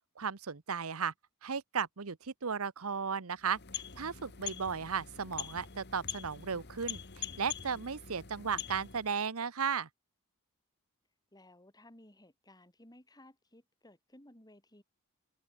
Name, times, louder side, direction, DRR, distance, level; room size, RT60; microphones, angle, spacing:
voice 1, 0.2-1.1 1.4-3.6 4.0-7.0 7.4-9.9, right 6 dB, 70° right, 0.9 m, -35 dB
sound 1, 3.4-9.2, left 9 dB, 50° left, 1.8 m, -44 dB
voice 2, 11.3-14.8, left 1 dB, 15° left, 3.9 m, -58 dB
open air
head